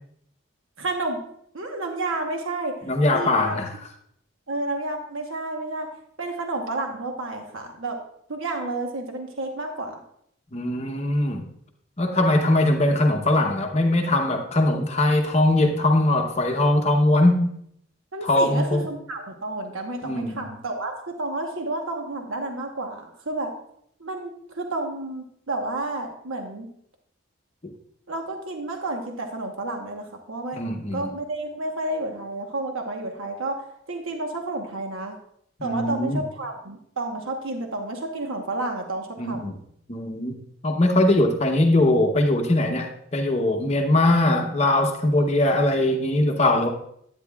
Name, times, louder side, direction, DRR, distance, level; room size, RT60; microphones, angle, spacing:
voice 1, 0.8-1.2 1.5-2.7 3.1-3.6 4.5-5.9 6.2-8.0 8.3-9.9 18.1-23.5 24.0-26.7 28.1-33.6 33.9-35.2 35.6-39.5, right 2 dB, 80° right, 3 dB, 1.1 m, -30 dB
voice 2, 2.8-3.7 10.5-11.4 12.0-17.5 18.2-18.9 20.0-20.4 27.6-27.7 30.5-31.1 35.6-36.2 39.2-39.6 39.9-40.4 40.6-46.7, left 1 dB, 30° left, 3 dB, 0.7 m, -21 dB
10.0 x 8.8 x 2.3 m, 0.69 s
head